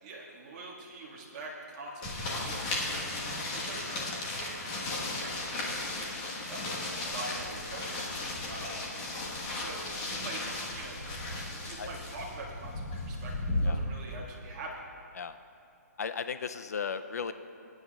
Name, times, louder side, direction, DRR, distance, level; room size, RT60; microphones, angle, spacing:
voice 1, 0.0-3.2 3.5-6.1 6.5-7.9 8.5-8.8 9.5-10.4 10.7-11.0 11.7-14.8, right 2 dB, 25° right, -5 dB, 1.8 m, -44 dB
sound 1, 2.0-13.7, left 2 dB, 20° left, 1.3 m, -35 dB
voice 2, 16.0-17.3, left 6 dB, 65° left, 10 dB, 0.4 m, -35 dB
22.5 x 10.0 x 2.4 m, 2.7 s
hypercardioid pair, 170°, 9 cm